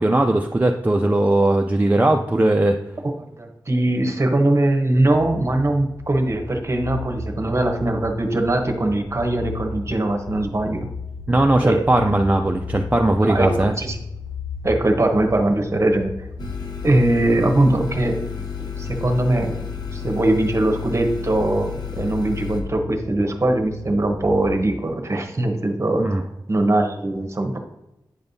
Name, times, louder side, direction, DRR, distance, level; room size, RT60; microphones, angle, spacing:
voice 1, 0.0-2.8 11.3-13.7 26.0-26.2, right 1 dB, 20° right, 2 dB, 0.4 m, -18 dB
voice 2, 3.4-10.9 11.6-11.9 13.2-14.0 14.6-16.3 16.8-18.2 18.8-19.6 19.9-26.2 26.5-27.6, right 1 dB, 35° right, 4 dB, 0.9 m, -21 dB
sound 1, 4.9-24.6, left 3 dB, 30° left, 0.6 m, -36 dB
sound 2, 16.4-22.6, left 7 dB, 60° left, 0.9 m, -31 dB
8.7 x 5.3 x 2.7 m, 0.90 s
wide cardioid pair, 80°, 8 cm